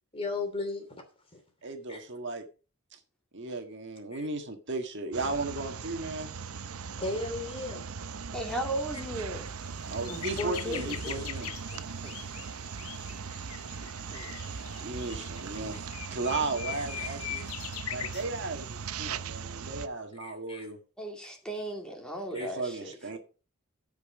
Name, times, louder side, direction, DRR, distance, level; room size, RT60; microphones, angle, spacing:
voice 1, 0.1-0.8 1.3-1.4 1.9-2.0 4.1-4.3 7.0-7.8 10.1-11.3 11.7-11.8 15.6-15.8 16.7-17.4 20.2-20.7 22.3-22.5, left 2 dB, 25° left, 5 dB, 2.8 m, -36 dB
voice 2, 1.6-2.4 3.3-6.3 9.9-11.5 14.8-15.8 16.1-17.4 17.9-20.8 22.3-23.2, right 3 dB, 55° right, 5 dB, 1.7 m, -35 dB
sound 1, 5.1-19.9, right 5 dB, 85° right, 0.7 m, -39 dB
voice 3, 8.3-9.6 12.0-12.1 14.1-14.4 21.0-23.2, right 1 dB, 5° left, 1 dB, 2.7 m, -36 dB
sound 2, 8.4-8.6 9.0-9.1 9.4-18.3 19.0-19.2, left 11 dB, 80° left, 0.7 m, -42 dB
15.0 x 5.5 x 5.2 m, 0.34 s
head